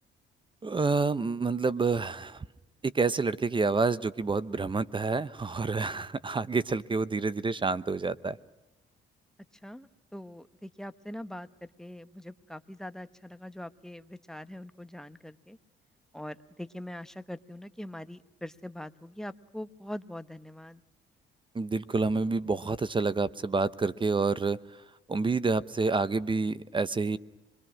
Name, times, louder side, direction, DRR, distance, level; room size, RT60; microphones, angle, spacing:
voice 1, 0.6-2.5 2.8-8.4 21.5-24.6 25.1-27.2, right 4 dB, 25° right, 16 dB, 0.7 m, -28 dB
voice 2, 9.6-11.5 11.8-15.6 16.1-20.8, left 1 dB, 5° left, 11 dB, 0.9 m, -42 dB
26.5 x 22.0 x 6.1 m, 1.0 s
cardioid pair, 90°, 20 cm